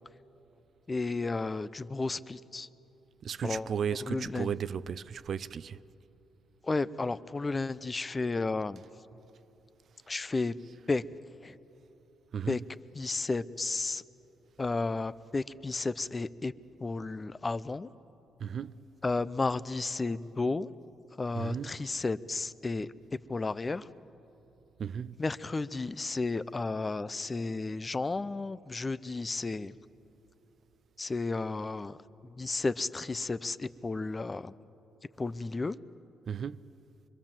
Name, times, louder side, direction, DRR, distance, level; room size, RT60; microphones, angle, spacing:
voice 1, 0.9-2.7 3.4-3.7 4.0-4.6 6.6-8.8 10.1-10.5 10.9-11.0 11.4-11.6 12.5-12.6 12.9-14.0 14.6-16.5 16.8-17.9 19.0-20.7 21.2-22.9 23.3-23.9 25.2-29.7 31.0-32.0 32.3-34.5 35.2-35.8, left 3 dB, 25° left, 0.6 m, -32 dB
voice 2, 3.2-5.8 12.3-12.5 18.4-18.8 21.4-21.8 24.8-25.1 36.3-36.7, right 7 dB, 55° right, 0.5 m, -35 dB
25.0 x 22.5 x 7.5 m
cardioid pair, 90°, 0 cm